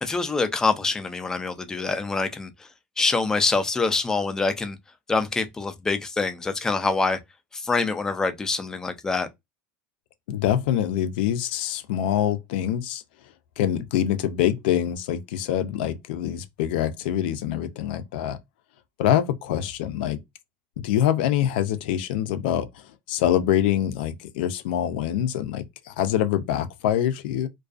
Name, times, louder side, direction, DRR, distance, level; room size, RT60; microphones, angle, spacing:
voice 1, 0.0-2.5 3.0-4.8 5.1-7.2 7.5-9.3, left 3 dB, 10° left, 0.3 m, -25 dB
voice 2, 10.3-13.0 13.6-18.4 19.0-20.2 20.8-27.5, left 11 dB, 75° left, 0.5 m, -25 dB
2.4 x 2.3 x 2.4 m
supercardioid pair, 150°, 5 cm